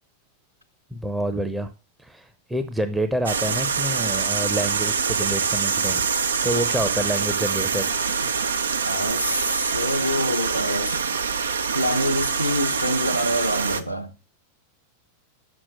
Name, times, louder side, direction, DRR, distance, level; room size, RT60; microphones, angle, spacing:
voice 1, 0.9-1.7 2.0-6.0 6.4-7.9, right 1 dB, 5° right, 0.7 m, -27 dB
sound 1, 3.3-13.8, right 5 dB, 70° right, 0.6 m, -25 dB
voice 2, 8.8-11.0 11.7-14.1, equal, 90° left, 0.8 m, -26 dB
6.2 x 6.1 x 6.1 m
figure-of-eight pair, 90°, 0 cm